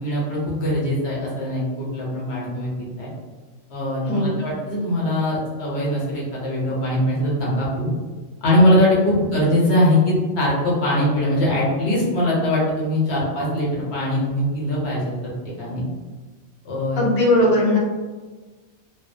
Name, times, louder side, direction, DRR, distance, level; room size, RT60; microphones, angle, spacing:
voice 1, 0.0-2.7 3.0-3.1 3.7-7.9 8.4-15.1 15.4-15.8 16.6-17.0, left 1 dB, 60° left, -5 dB, 0.9 m, -21 dB
voice 2, 4.0-4.4 17.0-17.8, left 1 dB, 40° left, -6 dB, 0.6 m, -18 dB
2.5 x 2.1 x 2.5 m, 1.3 s
omnidirectional pair, 1.3 m